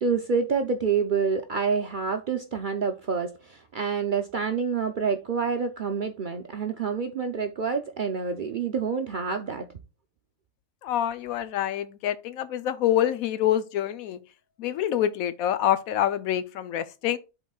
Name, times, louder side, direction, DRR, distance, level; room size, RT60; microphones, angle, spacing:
voice 1, 0.0-9.7, right 5 dB, 65° right, 0.5 m, -27 dB
voice 2, 10.8-14.2 14.6-17.2, left 11 dB, 75° left, 1.1 m, -26 dB
11.5 x 3.9 x 2.3 m
omnidirectional pair, 1.5 m